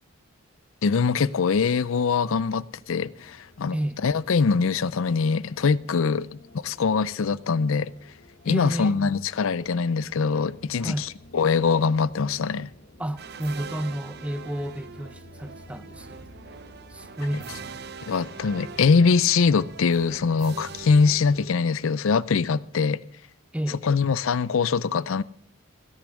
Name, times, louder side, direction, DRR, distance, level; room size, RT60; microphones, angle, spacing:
voice 1, 0.8-3.8 4.0-7.9 8.5-12.7 18.1-23.0 23.8-25.2, left 5 dB, 75° left, 0.5 m, -23 dB
sound 1, 2.8-21.6, left 2 dB, 50° left, 1.5 m, -52 dB
voice 2, 8.5-9.1 10.8-11.1 13.0-16.2 16.9-17.8 23.5-23.8, right 1 dB, 5° right, 0.6 m, -31 dB
sound 2, 13.2-22.0, right 5 dB, 50° right, 0.6 m, -43 dB
16.0 x 10.5 x 6.3 m
head